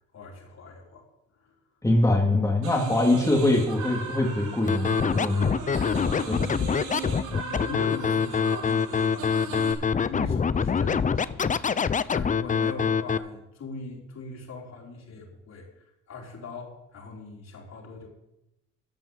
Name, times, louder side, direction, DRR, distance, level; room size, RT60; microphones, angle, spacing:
voice 1, 0.1-1.0 1.4-1.5 5.6-6.6 7.0-18.1, left 3 dB, 60° left, -2 dB, 4.7 m, -41 dB
voice 2, 1.8-5.5 6.4-6.5, left 2 dB, 10° left, 0 dB, 2.1 m, -23 dB
sound 1, 2.6-9.7, right 5 dB, 80° right, 3.2 m, -38 dB
Scratching (performance technique), 4.7-13.2, left 6 dB, 25° left, 0.5 m, -25 dB
14.0 x 5.4 x 9.5 m, 0.91 s
cardioid pair, 90°, 30 cm